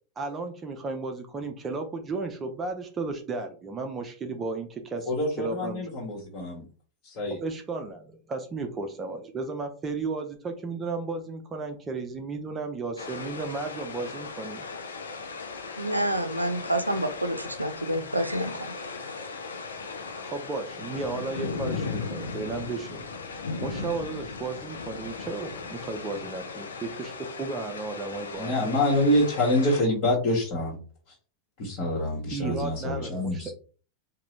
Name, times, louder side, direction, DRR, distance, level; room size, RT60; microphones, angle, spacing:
voice 1, 0.2-5.1 5.4-5.8 7.3-14.7 20.2-28.7 32.3-33.5, right 3 dB, 20° right, 4 dB, 0.5 m, -34 dB
voice 2, 5.1-6.6 7.0-7.4 28.4-30.8 31.6-33.5, left 1 dB, 45° left, -4 dB, 1.1 m, -26 dB
sound 1, 13.0-29.8, left 4 dB, 70° left, 0.6 m, -37 dB
voice 3, 15.8-18.5, right 1 dB, 85° right, 9 dB, 0.5 m, -28 dB
3.8 x 2.2 x 3.1 m, 0.38 s
figure-of-eight pair, 90°, 0 cm